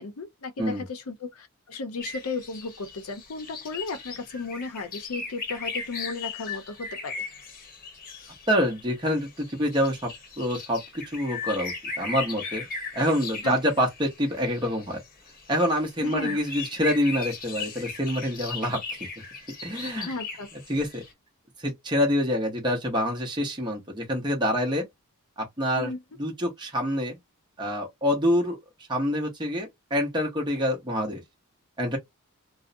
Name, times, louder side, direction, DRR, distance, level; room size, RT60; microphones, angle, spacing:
voice 1, 0.0-7.2 13.4-13.9 16.0-16.4 20.0-20.5 25.8-26.0, left 3 dB, 80° left, 0.6 m, -35 dB
sound 1, 2.0-21.1, left 4 dB, 40° left, 0.8 m, -38 dB
voice 2, 8.5-10.1 10.4-12.7 12.9-15.0 15.5-19.1 19.6-20.1 20.7-21.0 21.6-24.8 25.4-25.9 26.2-27.2 27.6-28.6 28.9-31.2 31.8-32.0, equal, 20° right, 0.8 m, -26 dB
2.5 x 2.0 x 2.5 m
head